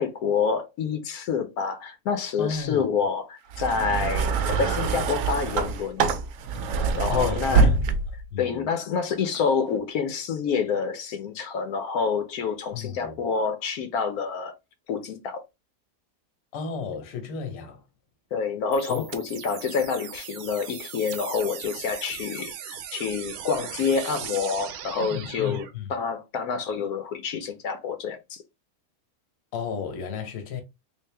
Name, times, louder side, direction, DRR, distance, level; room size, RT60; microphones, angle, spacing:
voice 1, 0.0-6.0 6.9-7.7 8.4-14.5 14.9-15.4 18.3-28.4, left 6 dB, 85° left, 1.2 m, -28 dB
voice 2, 2.4-2.8 7.1-7.9 8.3-8.6 12.7-13.2 16.5-17.8 18.9-19.0 25.0-25.9 29.5-30.6, left 6 dB, 50° left, 1.0 m, -33 dB
sound 1, 3.5-8.3 9.3-9.4, right 4 dB, 70° right, 0.9 m, -24 dB
sound 2, 18.7-25.7, right 9 dB, 90° right, 1.1 m, -39 dB
3.4 x 2.5 x 3.3 m
omnidirectional pair, 1.5 m